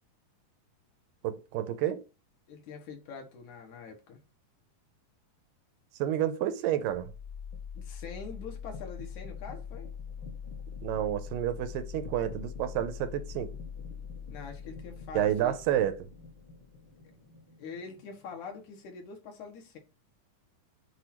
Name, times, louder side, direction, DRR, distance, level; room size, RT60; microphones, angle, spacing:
voice 1, 1.2-2.0 6.0-7.1 10.8-13.5 15.1-16.1, right 11 dB, 85° right, 2.3 m, -30 dB
voice 2, 2.5-4.2 7.7-9.9 14.3-15.8 17.6-19.8, left 5 dB, 65° left, 2.5 m, -44 dB
sound 1, 6.8-18.7, left 6 dB, 50° left, 1.6 m, -43 dB
8.0 x 2.7 x 4.3 m
omnidirectional pair, 3.9 m